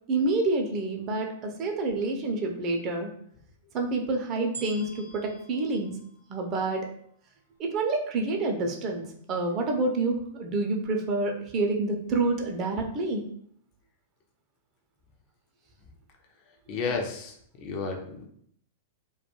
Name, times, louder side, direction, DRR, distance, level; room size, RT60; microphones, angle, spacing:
voice 1, 0.1-3.1 3.7-6.0 6.3-6.9 7.6-13.2, right 3 dB, 35° right, 2 dB, 0.4 m, -28 dB
sound 1, 4.5-6.9 7.6-7.7, right 4 dB, 90° right, 0.5 m, -46 dB
voice 2, 16.7-17.4 17.6-18.3, left 4 dB, 45° left, 2 dB, 0.4 m, -31 dB
2.2 x 2.2 x 2.9 m, 0.65 s
figure-of-eight pair, 100°, 0 cm